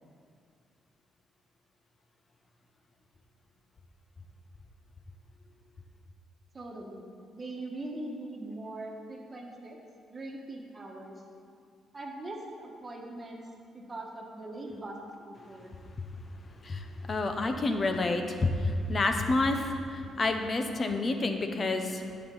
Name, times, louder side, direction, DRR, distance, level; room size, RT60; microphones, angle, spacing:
voice 1, 6.5-9.8 10.1-11.2 11.9-13.4 13.7-15.0 15.3-15.7, right 2 dB, 30° right, -1 dB, 1.6 m, -41 dB
voice 2, 16.6-22.0, left 2 dB, 40° left, 6 dB, 0.7 m, -29 dB
10.5 x 6.9 x 4.0 m, 2.3 s
cardioid pair, 90°, 0 cm